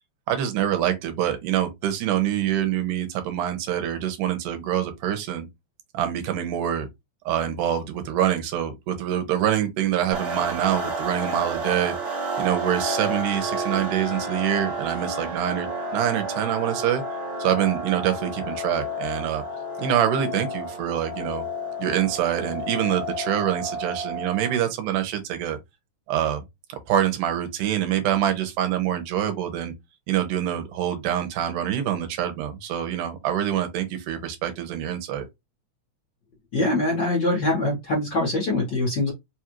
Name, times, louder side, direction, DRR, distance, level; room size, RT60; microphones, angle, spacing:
voice 1, 0.3-5.5 5.9-6.9 7.3-11.9 12.4-17.0 17.4-19.4 19.8-21.5 21.8-25.6 26.1-26.4 26.7-29.7 30.1-35.3, right 10 dB, 90° right, 2.4 m, -25 dB
sound 1, 10.1-24.7, right 1 dB, 40° right, 1.4 m, -31 dB
voice 2, 36.5-39.1, left 2 dB, 50° left, 1.3 m, -23 dB
5.0 x 2.5 x 3.0 m
omnidirectional pair, 3.6 m